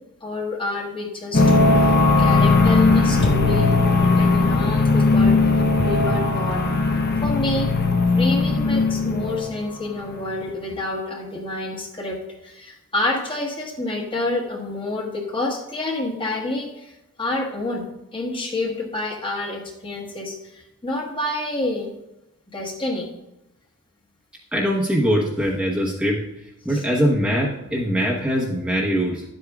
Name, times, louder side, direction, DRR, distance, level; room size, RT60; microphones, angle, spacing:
voice 1, 0.2-3.7 3.9-6.7 7.2-7.7 8.1-16.9 17.2-17.8 18.1-21.9 22.5-23.1 26.7-26.8, left 2 dB, 25° left, -1 dB, 1.4 m, -28 dB
sound 1, 1.3-9.6, left 3 dB, 45° left, 0.8 m, -18 dB
voice 2, 24.5-26.2 26.6-29.2, equal, 5° right, -4 dB, 1.0 m, -22 dB
11.0 x 8.1 x 2.4 m, 0.90 s
head